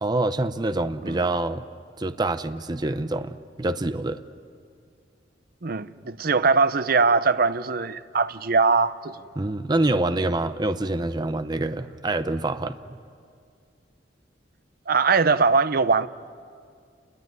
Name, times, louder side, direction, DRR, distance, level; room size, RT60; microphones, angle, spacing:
voice 1, 0.0-1.6 2.0-4.2 9.4-12.8, right 2 dB, 25° right, 0.7 m, -26 dB
voice 2, 5.6-9.2 9.9-10.0 14.9-16.1, right 4 dB, 55° right, 0.8 m, -21 dB
29.0 x 21.0 x 9.5 m
head